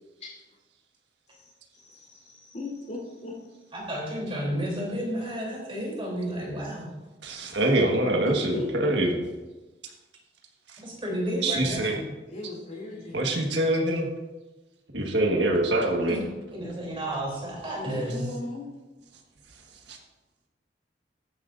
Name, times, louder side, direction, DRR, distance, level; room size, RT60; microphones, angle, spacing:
voice 1, 1.3-3.6 8.2-9.1 12.3-13.4 17.7-18.7, left 2 dB, 45° left, -3 dB, 3.8 m, -39 dB
voice 2, 3.7-6.9 10.8-12.0 16.1-16.2 16.5-18.3, equal, 30° right, -3 dB, 3.4 m, -31 dB
voice 3, 7.2-9.1 11.4-12.0 13.1-14.1 14.9-16.2 19.9-20.0, right 1 dB, 75° right, 1 dB, 1.6 m, -24 dB
14.5 x 9.9 x 2.6 m, 1.1 s
head